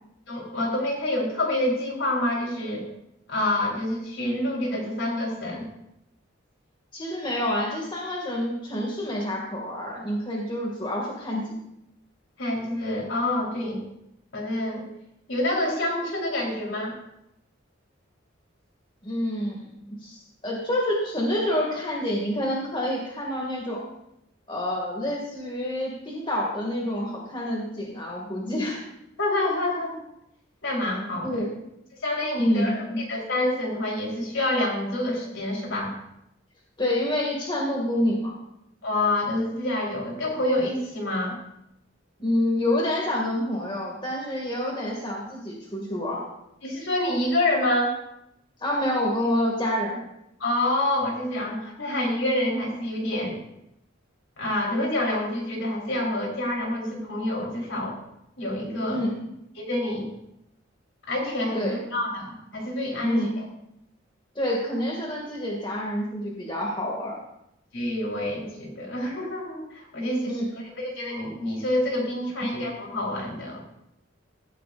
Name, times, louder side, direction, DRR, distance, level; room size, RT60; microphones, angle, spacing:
voice 1, 0.3-2.8 3.3-5.7 12.4-13.8 14.3-14.8 15.3-17.0 29.2-30.0 30.6-31.4 32.0-32.8 33.1-35.9 38.8-41.4 46.6-48.0 50.4-53.4 54.4-58.0 58.4-59.1 59.6-60.1 61.1-61.6 61.9-63.4 67.7-70.4 70.8-73.6, left 1 dB, 70° left, -1 dB, 4.0 m, -27 dB
voice 2, 6.9-11.6 19.0-23.8 24.5-28.8 31.2-31.5 32.4-33.0 36.8-38.3 42.2-46.2 48.6-50.0 58.9-59.2 61.5-61.8 63.0-63.3 64.4-67.2 70.3-70.5, left 1 dB, 25° left, -2 dB, 2.3 m, -27 dB
16.5 x 15.0 x 2.6 m, 0.81 s
head